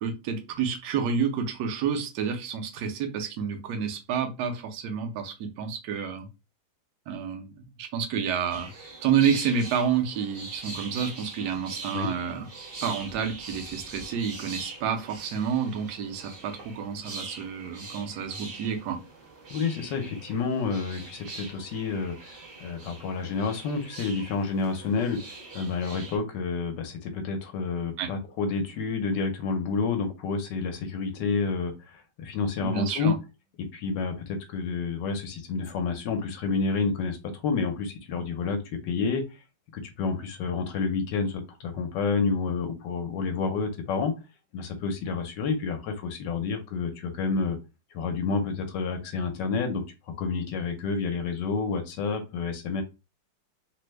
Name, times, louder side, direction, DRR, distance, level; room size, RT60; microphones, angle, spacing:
voice 1, 0.0-6.3 7.1-12.5 12.8-19.0 28.0-28.1 32.6-33.1, right 7 dB, 70° right, 5 dB, 1.1 m, -29 dB
sound 1, 8.5-26.2, right 3 dB, 45° right, 0.8 m, -43 dB
voice 2, 19.5-33.1 33.6-38.6 38.8-39.2 39.7-44.1 44.5-47.6 47.9-49.8 50.2-52.8, left 4 dB, 75° left, 6 dB, 1.2 m, -29 dB
3.3 x 2.1 x 3.1 m, 0.27 s
omnidirectional pair, 2.0 m